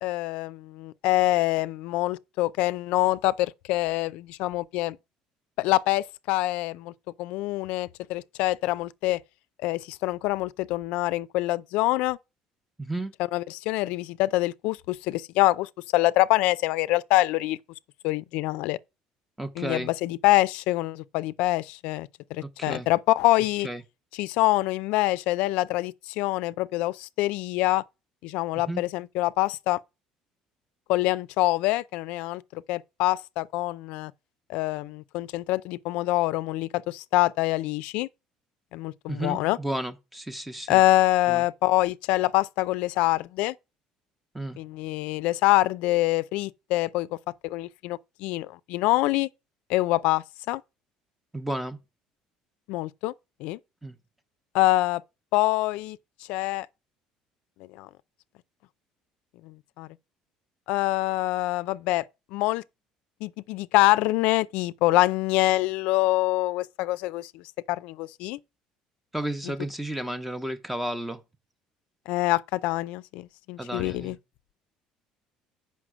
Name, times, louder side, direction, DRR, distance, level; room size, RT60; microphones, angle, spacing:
voice 1, 0.0-5.0 5.6-6.9 7.2-9.2 9.6-12.2 13.3-17.6 18.0-18.8 19.6-23.7 24.1-27.8 28.2-29.8 30.9-34.1 34.5-38.1 38.7-39.6 40.7-43.5 44.6-47.1 47.4-49.3 49.7-50.6 52.7-53.1 53.4-53.6 54.5-55.0 55.3-56.0 56.3-56.7 57.8-57.9 59.4-59.9 60.7-62.1 62.3-62.6 63.2-68.4 72.1-74.2, left 18 dB, 80° left, 0.4 m, -25 dB
voice 2, 12.8-13.1 19.4-19.9 22.4-22.9 23.6-23.8 28.7-28.8 39.1-40.8 41.3-41.4 44.3-44.6 51.3-51.8 53.8-54.0 69.1-71.2 73.6-74.2, right 1 dB, 5° right, 0.8 m, -32 dB
7.6 x 5.6 x 6.1 m
cardioid pair, 150°, 2 cm